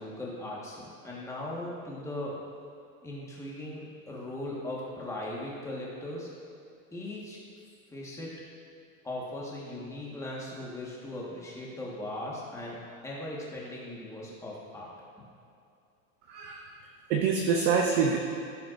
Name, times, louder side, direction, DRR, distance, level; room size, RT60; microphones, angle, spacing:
voice 1, 0.0-2.4 3.0-6.3 6.9-7.4 7.9-8.4 9.0-14.9, left 1 dB, 5° left, -5 dB, 1.4 m, -38 dB
voice 2, 16.3-16.7 17.1-18.2, right 6 dB, 25° right, 2 dB, 0.4 m, -25 dB
15.0 x 5.9 x 2.5 m, 2.6 s
supercardioid pair, 155°, 43 cm